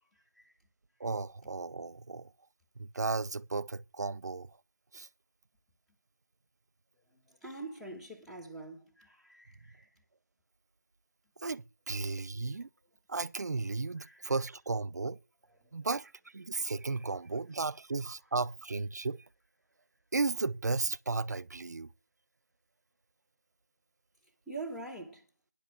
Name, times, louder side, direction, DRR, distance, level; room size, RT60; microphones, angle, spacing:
voice 1, 1.0-2.3 2.8-4.5 4.9-5.1 11.4-12.7 13.1-15.2 15.7-19.2 20.1-21.9, right 3 dB, 70° right, 0.6 m, -34 dB
voice 2, 7.3-9.9 14.0-14.3 24.5-25.2, right 3 dB, 5° left, 1.2 m, -44 dB
10.5 x 8.1 x 7.3 m
figure-of-eight pair, 165°, 9 cm